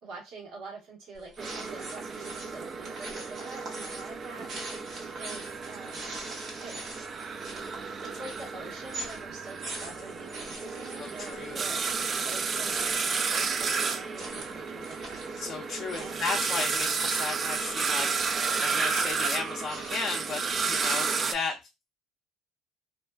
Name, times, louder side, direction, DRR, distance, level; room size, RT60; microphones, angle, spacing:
voice 1, 0.0-4.5 5.2-6.0 6.6-6.8 8.0-11.9 12.2-15.3 15.9-16.3, right 3 dB, 75° right, -1 dB, 1.2 m, -45 dB
sound 1, 1.2-20.8, right 2 dB, 55° right, 1.2 m, -44 dB
sound 2, 1.4-21.3, right 5 dB, 40° right, 0.3 m, -32 dB
voice 2, 11.0-11.7 15.4-21.6, left 4 dB, 50° left, 0 dB, 0.5 m, -35 dB
2.5 x 2.3 x 2.2 m, 0.24 s
supercardioid pair, 90°, 0 cm